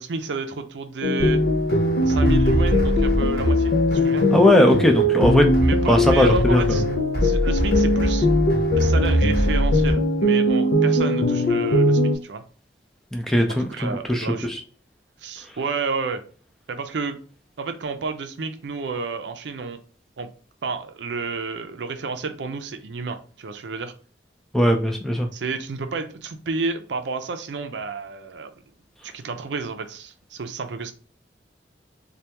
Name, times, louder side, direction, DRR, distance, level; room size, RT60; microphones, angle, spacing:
voice 1, 0.0-1.4 2.1-4.3 5.6-6.8 7.2-8.3 8.7-12.4 13.5-14.5 15.2-16.2 16.7-17.2 17.6-19.8 20.2-20.3 20.6-23.9 25.3-28.5 29.1-30.9, right 4 dB, 85° right, 8 dB, 0.5 m, -30 dB
sound 1, 1.0-12.2, left 1 dB, 75° left, 0.5 m, -21 dB
sound 2, 1.2-9.9, right 1 dB, 55° left, 1.0 m, -24 dB
voice 2, 4.3-5.5 5.9-6.8 13.1-14.6 24.5-25.3, equal, ahead, 3 dB, 0.4 m, -19 dB
3.3 x 2.3 x 2.8 m, 0.41 s
head